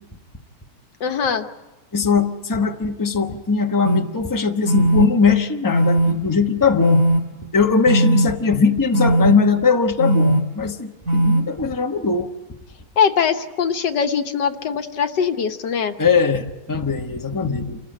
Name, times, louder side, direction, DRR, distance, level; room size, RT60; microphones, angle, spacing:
voice 1, 1.0-1.5 13.0-15.9, left 7 dB, 90° left, 7 dB, 1.8 m, -21 dB
voice 2, 1.9-7.0 7.5-12.3 16.0-17.8, left 5 dB, 15° left, 4 dB, 0.9 m, -20 dB
sound 1, 3.8-4.0 4.6-5.1 5.7-6.1 6.8-7.2 7.8-8.3 8.9-9.3 10.0-10.4 11.0-11.4, right 1 dB, 50° right, 3.7 m, -17 dB
28.0 x 14.5 x 9.0 m, 1.1 s
omnidirectional pair, 1.8 m